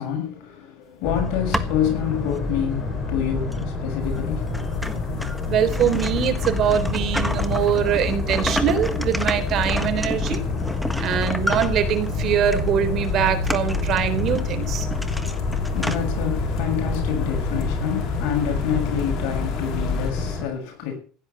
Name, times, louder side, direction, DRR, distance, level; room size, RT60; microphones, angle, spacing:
voice 1, 0.0-5.3 15.0-21.0, left 9 dB, 65° left, 2 dB, 6.8 m, -28 dB
Boat Water vehicle, 1.0-20.5, left 3 dB, 25° left, 7.1 m, -28 dB
sound 1, 1.2-1.9 2.5-2.6 3.5-3.6 4.1-4.2 4.5-12.1 12.5-12.7 13.0-16.0, equal, ahead, 1.4 m, -31 dB
sound 2, 4.0-20.1, left 4 dB, 50° left, 3.8 m, -32 dB
voice 2, 5.5-10.4 11.0-14.9, right 9 dB, 45° right, 8 dB, 3.8 m, -23 dB
16.0 x 10.5 x 7.1 m, 0.41 s
cardioid pair, 145°, 0 cm